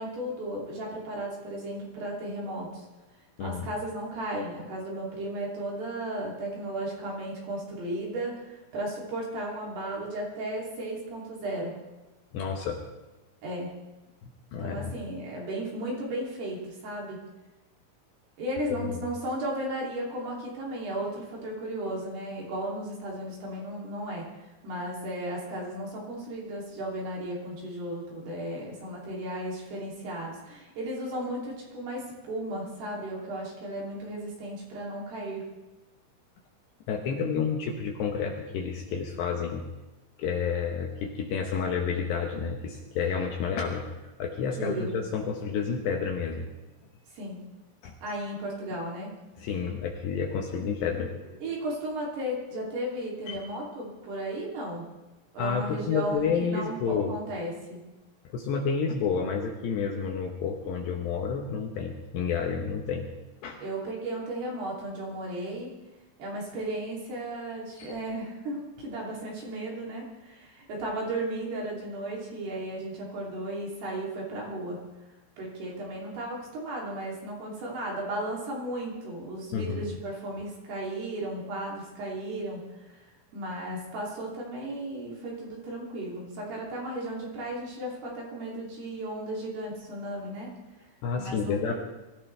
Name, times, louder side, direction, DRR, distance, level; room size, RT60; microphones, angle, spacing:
voice 1, 0.0-2.8 3.4-11.7 13.4-13.7 14.6-17.2 18.4-24.2 24.6-35.4 44.6-45.0 47.1-47.4 48.0-49.1 51.4-54.9 55.3-57.8 63.6-65.7 66.2-74.8 75.4-83.0 83.3-90.5 91.1-91.7, right 1 dB, 55° right, -3 dB, 4.8 m, -35 dB
voice 2, 12.3-12.8 14.2-14.9 18.8-18.9 36.9-39.6 40.2-43.9 44.2-46.5 47.8-47.9 49.4-51.4 53.3-53.4 55.4-57.2 58.3-63.1 63.4-63.6 67.8-67.9 79.5-79.9 91.0-91.7, left 6 dB, 70° left, 1 dB, 2.9 m, -30 dB
23.5 x 15.0 x 3.4 m, 1.1 s
omnidirectional pair, 5.9 m